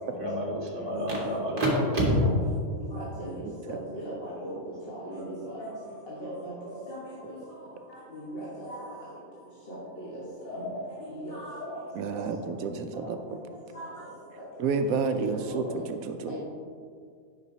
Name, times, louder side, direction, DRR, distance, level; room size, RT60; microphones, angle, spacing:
voice 1, 0.1-2.0 6.7-6.8 10.6-10.7, right 1 dB, 30° right, -5 dB, 1.8 m, -29 dB
voice 2, 2.8-4.5 4.9-5.7 6.1-6.5 6.9-7.0 8.1-8.8 9.7-10.2 10.5-10.6 11.1-11.6 12.1-12.2 13.0-13.1 13.7-13.9 15.5-15.7 16.3-16.4, right 1 dB, 45° left, -8 dB, 1.5 m, -38 dB
voice 3, 11.9-13.4 14.6-16.4, right 4 dB, 85° right, 8 dB, 1.0 m, -30 dB
9.8 x 5.8 x 2.7 m, 2.1 s
omnidirectional pair, 1.5 m